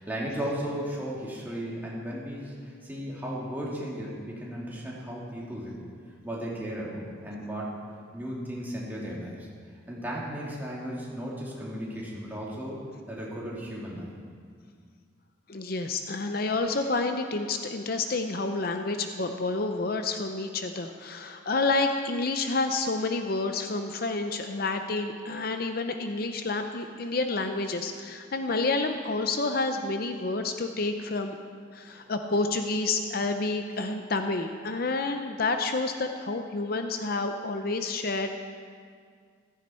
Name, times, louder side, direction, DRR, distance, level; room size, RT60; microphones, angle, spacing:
voice 1, 0.0-5.8 6.2-7.8 8.1-9.4 9.9-12.8 13.1-14.1 31.9-32.0, equal, 10° right, -5 dB, 2.7 m, -35 dB
voice 2, 15.5-31.4 31.7-38.3, left 3 dB, 50° left, 6 dB, 0.7 m, -29 dB
15.0 x 14.0 x 4.4 m, 2.1 s
head